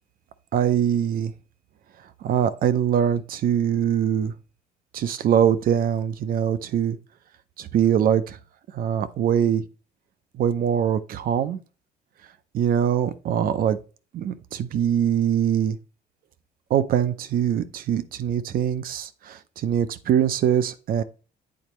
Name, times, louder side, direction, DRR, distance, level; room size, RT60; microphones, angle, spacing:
voice 1, 0.5-1.3 2.2-4.3 4.9-7.0 7.6-8.4 8.7-9.6 10.4-11.6 12.5-13.8 14.1-15.8 16.7-21.0, right 9 dB, 60° right, 0.6 m, -23 dB
8.6 x 4.2 x 3.0 m
cardioid pair, 110°, 17 cm